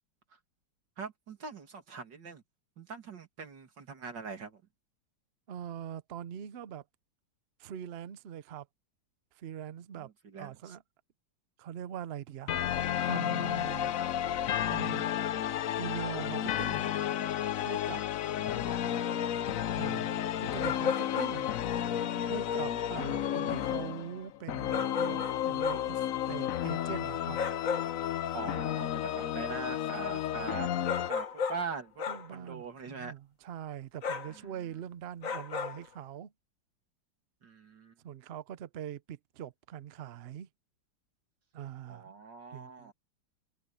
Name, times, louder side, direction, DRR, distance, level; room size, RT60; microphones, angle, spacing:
voice 1, 1.0-2.4 2.8-4.6 10.0-10.7 18.4-19.3 22.9-23.4 28.3-32.0 32.3-33.1 34.3-34.5 37.4-37.9 41.9-42.9, right 5 dB, 65° right, 3.1 m, -43 dB
voice 2, 5.5-6.8 7.6-8.7 9.4-10.1 10.4-10.8 11.6-13.9 14.6-15.1 15.8-16.9 17.6-18.0 19.7-21.5 22.2-27.4 32.1-36.3 38.0-40.5 41.5-42.2 42.5-42.9, right 9 dB, 90° right, 0.5 m, -42 dB
sound 1, 12.5-31.1, left 10 dB, 65° left, 0.8 m, -32 dB
sound 2, 19.1-19.2 20.6-21.5 24.7-26.0 27.3-28.0 30.8-31.7 32.0-32.3 34.0-34.4 35.2-35.9, left 6 dB, 45° left, 1.6 m, -34 dB
omnidirectional pair, 2.1 m